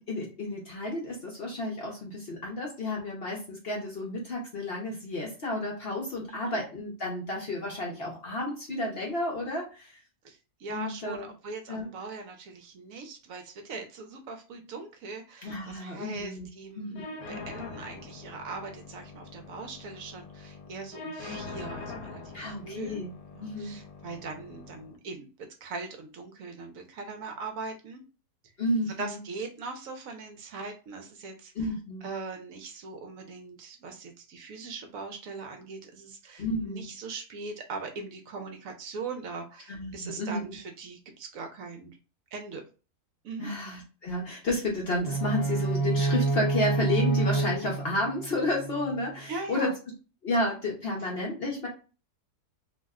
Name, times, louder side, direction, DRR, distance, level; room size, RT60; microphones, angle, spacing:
voice 1, 0.0-10.0 10.7-11.3 11.7-11.9 15.4-16.5 16.8-17.0 22.3-23.1 23.4-23.8 28.6-29.2 31.6-32.0 36.4-36.9 39.7-40.6 43.4-49.7 50.2-51.7, left 1 dB, 55° left, -1 dB, 0.7 m, -31 dB
voice 2, 10.2-23.0 23.3-25.3 25.6-28.0 29.0-31.7 32.0-42.0 42.3-42.6 43.2-43.5 49.3-49.7, right 4 dB, 70° right, 5 dB, 0.9 m, -40 dB
sound 1, 17.0-25.0, left 3 dB, 70° left, 1.1 m, -43 dB
sound 2, 45.0-49.0, right 3 dB, 15° left, 0.8 m, -28 dB
2.7 x 2.1 x 3.5 m, 0.34 s
omnidirectional pair, 1.6 m